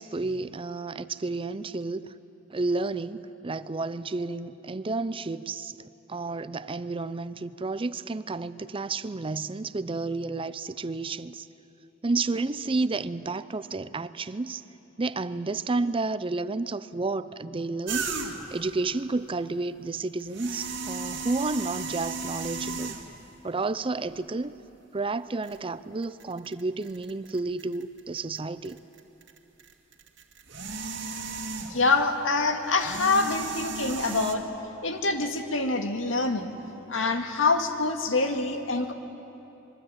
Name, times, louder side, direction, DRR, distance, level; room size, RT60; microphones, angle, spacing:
voice 1, 0.0-2.1 2.5-11.5 12.0-14.6 15.0-23.0 23.4-24.5 24.9-28.8, right 3 dB, 30° right, 15 dB, 0.6 m, -31 dB
sound 1, 17.9-18.6 20.2-23.3 24.1-24.2 25.4-25.6 26.0-28.4 28.6-32.0 32.7-34.3, right 4 dB, 65° right, 2.1 m, -35 dB
voice 2, 31.7-34.5 34.8-36.5 36.9-38.9, left 3 dB, 85° left, 5 dB, 1.9 m, -25 dB
25.5 x 22.5 x 9.0 m, 3.0 s
head